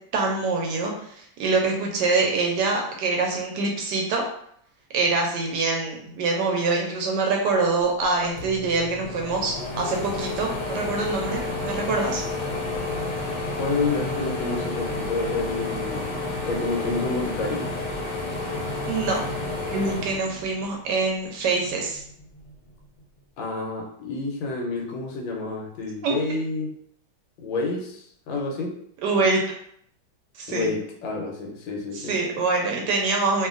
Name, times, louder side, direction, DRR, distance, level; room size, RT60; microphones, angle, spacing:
voice 1, 0.1-4.2 4.9-12.2 18.9-19.2 19.7-22.0 26.0-26.1 29.0-29.4 30.3-30.7 31.9-33.5, right 3 dB, 75° right, 1 dB, 1.0 m, -25 dB
sound 1, 8.0-8.1 8.4-21.0 21.4-22.5, left 2 dB, 60° left, 1.0 m, -31 dB
voice 2, 13.6-17.7 23.4-26.7 27.4-28.8 30.5-32.1, left 3 dB, 90° left, 0 dB, 1.4 m, -29 dB
2.8 x 2.7 x 2.4 m, 0.67 s
omnidirectional pair, 2.1 m